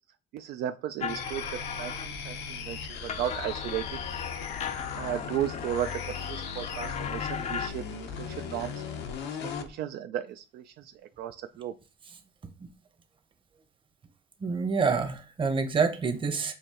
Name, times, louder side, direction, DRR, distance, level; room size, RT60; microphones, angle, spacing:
voice 1, 0.3-4.0 4.9-8.7 9.4-11.7, right 11 dB, 75° right, 8 dB, 0.4 m, -35 dB
sound 1, 1.0-2.4 2.8-7.7, left 7 dB, 40° left, 0.4 m, -37 dB
sound 2, 1.1-9.7, left 6 dB, 80° left, 0.8 m, -38 dB
voice 2, 14.4-16.5, right 5 dB, 30° right, 7 dB, 0.9 m, -27 dB
6.5 x 2.6 x 2.9 m, 0.33 s
cardioid pair, 110°, 17 cm